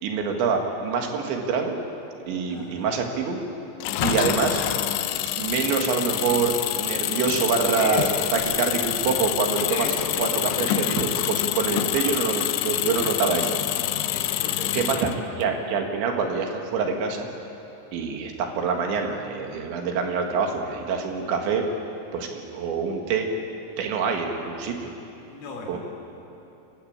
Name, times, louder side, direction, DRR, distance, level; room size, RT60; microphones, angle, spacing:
voice 1, 0.0-1.8 2.3-3.4 4.0-4.6 5.3-9.9 10.2-13.6 14.7-15.1 15.4-17.3 17.9-21.6 22.1-23.3 23.8-24.9 25.7-25.8, right 5 dB, 70° right, 2 dB, 3.9 m, -26 dB
voice 2, 2.5-3.0 7.8-8.3 9.7-10.1 11.6-12.1 14.1-15.0 25.3-25.8, left 4 dB, 65° left, 0 dB, 5.6 m, -35 dB
Engine, 3.8-15.4, left 13 dB, 85° left, 2.4 m, -27 dB
29.5 x 13.0 x 8.8 m, 2.9 s
omnidirectional pair, 5.8 m